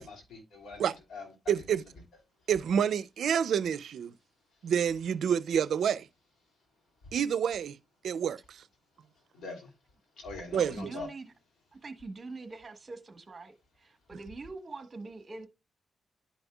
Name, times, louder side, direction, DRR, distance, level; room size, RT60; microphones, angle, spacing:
voice 1, 0.0-1.6 9.3-9.7 10.2-11.1, left 3 dB, 80° left, 2.8 m, -43 dB
voice 2, 1.5-1.8 2.5-4.1 4.6-6.1 7.1-7.8 8.0-8.6 10.5-11.0, right 8 dB, 80° right, 0.4 m, -28 dB
voice 3, 10.7-11.3 11.8-15.5, right 3 dB, 35° right, 1.2 m, -43 dB
11.5 x 5.4 x 2.3 m
cardioid pair, 95°, 0 cm